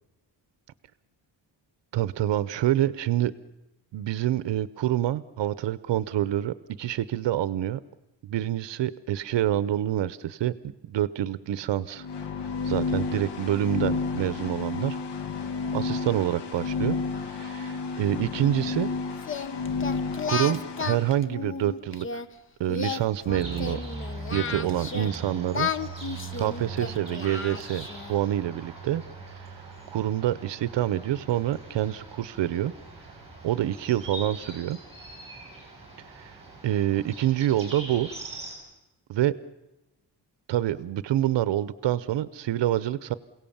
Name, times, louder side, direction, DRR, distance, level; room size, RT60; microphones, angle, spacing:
voice 1, 1.9-3.3 3.9-7.8 8.2-12.1 12.6-15.0 15.7-18.9 20.2-22.2 22.6-23.8 24.3-25.7 26.4-29.0 29.4-29.5 29.9-32.7 33.4-34.8 36.2-36.4 36.6-38.1 39.1-39.3 40.5-43.1, right 12 dB, 65° right, 16 dB, 0.8 m, -27 dB
sound 1, 12.0-21.1, left 4 dB, 60° left, 1.2 m, -31 dB
Singing, 19.2-22.3 22.7-25.2 25.5-28.1, left 5 dB, 25° left, 0.7 m, -33 dB
sound 2, 23.3-38.5, right 3 dB, 15° right, 7.2 m, -41 dB
28.0 x 17.5 x 7.2 m, 0.97 s
wide cardioid pair, 180°, 46 cm